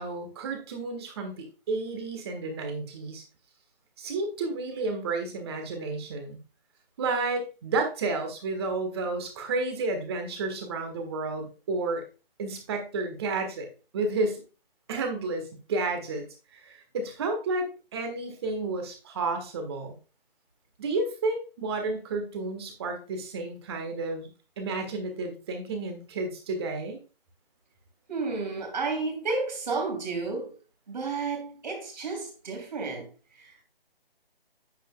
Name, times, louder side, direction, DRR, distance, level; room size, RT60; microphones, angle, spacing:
voice 1, 0.0-3.2 4.0-6.4 7.0-12.0 12.4-13.7 13.9-14.4 14.9-16.2 16.6-19.9 20.8-24.3 24.6-27.0, right 3 dB, 25° right, 1.5 m, -31 dB
voice 2, 28.1-30.5 30.9-33.1 33.3-33.6, right 4 dB, 45° right, 3.1 m, -32 dB
8.9 x 7.6 x 2.3 m
figure-of-eight pair, 150°, 30 cm